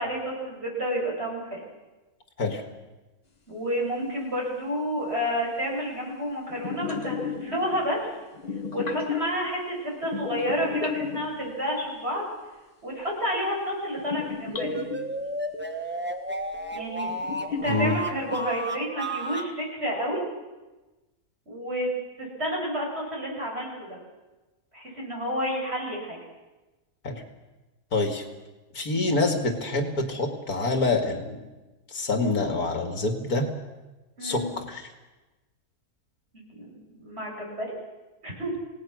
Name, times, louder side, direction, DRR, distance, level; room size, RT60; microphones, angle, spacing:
voice 1, 0.0-1.6 3.5-8.1 8.7-12.2 12.8-14.8 16.7-17.1 17.5-20.2 21.5-21.9 22.2-23.9 24.7-26.2 34.2-34.5 36.3-37.7 38.2-38.6, equal, 40° right, -2 dB, 7.6 m, -30 dB
sound 1, 6.5-8.1 8.3-9.5 10.0-11.7 14.0-15.2 16.6-16.7 17.1-18.4, left 6 dB, 30° left, 1.3 m, -34 dB
sound 2, 14.5-19.5, right 1 dB, 5° right, 1.5 m, -33 dB
voice 2, 17.7-18.0 27.0-27.2 27.9-28.2 28.7-31.4 31.9-33.5 34.2-34.8, left 2 dB, 75° left, 5 dB, 2.7 m, -26 dB
28.0 x 18.0 x 6.4 m, 1.1 s
omnidirectional pair, 1.6 m